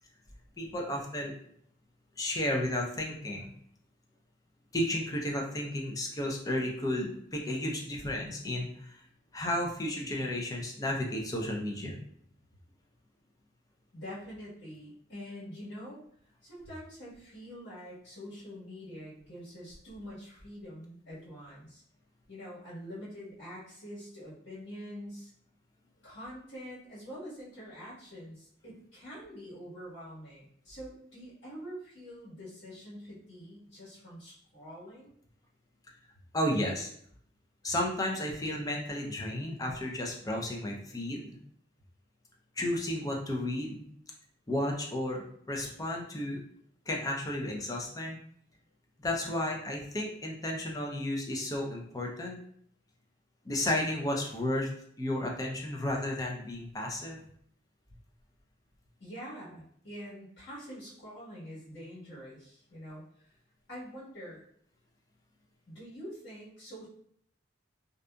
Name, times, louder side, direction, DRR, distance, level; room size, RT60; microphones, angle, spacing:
voice 1, 0.6-1.3 2.2-3.5 4.7-9.0 9.3-12.0 36.3-36.9 37.6-41.4 42.6-43.8 44.5-46.4 46.9-48.2 49.0-52.4 53.4-54.7 55.0-57.2, left 1 dB, 20° left, 0 dB, 0.4 m, -33 dB
voice 2, 13.9-16.0 16.4-21.8 22.3-25.3 26.0-35.1 59.0-63.0 63.7-64.4 65.7-66.9, equal, 75° left, -8 dB, 1.4 m, -45 dB
2.6 x 2.4 x 2.2 m, 0.65 s
head